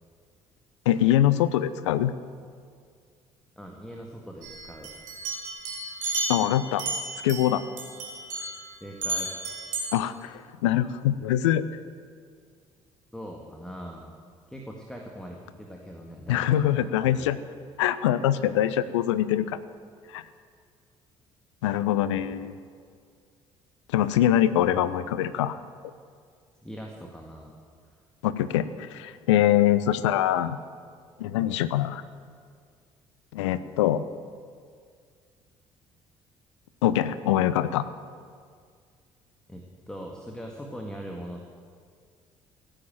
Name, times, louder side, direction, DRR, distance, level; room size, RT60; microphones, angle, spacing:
voice 1, 0.9-2.1 6.3-6.8 7.2-7.6 9.9-11.6 16.3-17.4 17.8-19.6 20.1-20.2 21.6-22.5 23.9-25.6 28.2-30.6 31.2-32.0 33.3-34.0 36.8-37.8, left 12 dB, 75° left, 14 dB, 0.6 m, -23 dB
voice 2, 3.6-5.0 8.8-9.3 13.1-14.1 14.5-17.3 22.1-22.3 24.7-24.8 26.6-27.5 27.9-28.0 39.5-41.4, equal, 5° left, 0 dB, 2.0 m, -41 dB
sound 1, 4.4-7.5 7.8-8.6 9.0-9.9, right 2 dB, 60° right, 3.1 m, -33 dB
16.0 x 8.9 x 9.2 m, 2.1 s
figure-of-eight pair, 50°, 15 cm